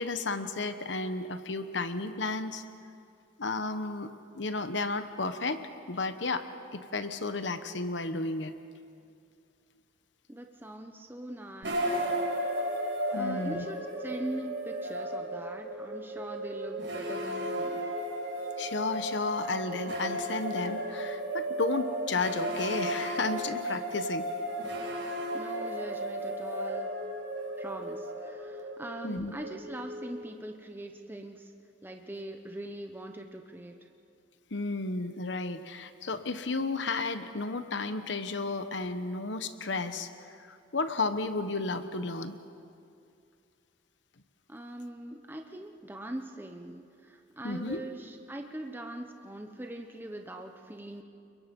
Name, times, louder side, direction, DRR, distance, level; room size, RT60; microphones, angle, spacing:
voice 1, 0.0-2.6 3.4-5.6 5.9-6.4 6.7-8.5 13.1-13.6 18.6-24.3 29.0-29.3 34.5-42.4 47.4-47.8, left 3 dB, 70° left, 10 dB, 1.1 m, -33 dB
voice 2, 10.3-12.1 12.4-12.5 13.1-17.8 25.3-26.9 27.6-31.5 31.8-33.7 44.5-51.0, right 1 dB, 10° right, 3 dB, 1.0 m, -42 dB
sound 1, 11.6-30.7, right 1 dB, 75° right, 5.0 m, -34 dB
29.5 x 22.5 x 5.4 m, 2.4 s
head